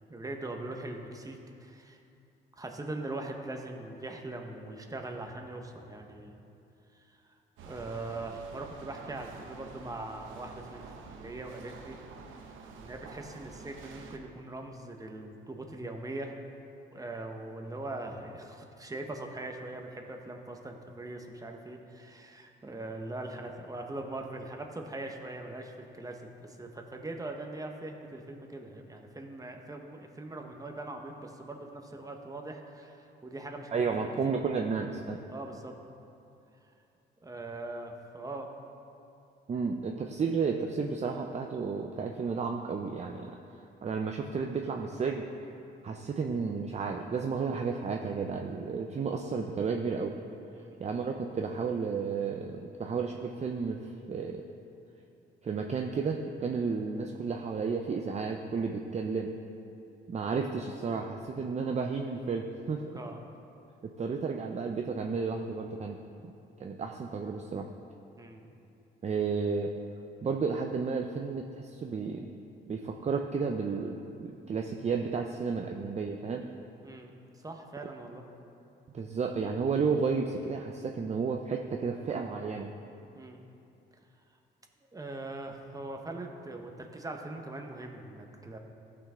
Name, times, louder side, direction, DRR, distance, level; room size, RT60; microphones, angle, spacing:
voice 1, 0.1-2.0 2.6-6.4 6.9-7.4 7.6-10.8 11.1-12.0 12.7-16.3 16.9-34.4 35.3-35.8 37.2-38.5 50.5-50.8 62.9-63.2 68.2-68.5 76.8-78.2 83.1-83.4 84.9-88.6, right 2 dB, 15° right, 3 dB, 1.2 m, -41 dB
sound 1, 7.6-14.2, right 5 dB, 80° right, 0.9 m, -48 dB
voice 2, 33.7-35.2 39.5-43.4 43.8-45.2 45.8-50.1 50.8-54.4 55.4-59.3 60.1-62.8 64.0-66.0 66.2-66.3 66.6-67.7 69.0-69.7 70.2-72.3 72.7-76.5 78.9-82.7, right 5 dB, 35° right, 3 dB, 0.6 m, -32 dB
15.0 x 5.9 x 3.8 m, 2.7 s
cardioid pair, 90°, 20 cm